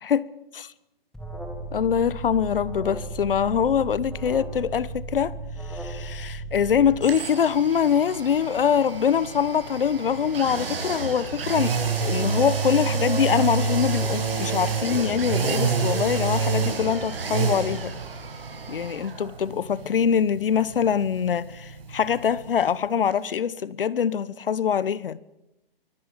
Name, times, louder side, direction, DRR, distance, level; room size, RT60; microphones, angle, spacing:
Alarm, 1.1-7.0, right 2 dB, ahead, 2.0 m, -35 dB
voice 1, 1.7-5.3 5.7-18.0 18.7-25.2, left 8 dB, 65° left, 1.0 m, -24 dB
sound 1, 7.0-22.8 23.1-23.2, right 5 dB, 70° right, 6.2 m, -28 dB
24.0 x 16.5 x 7.4 m
hypercardioid pair, 160°, 30 cm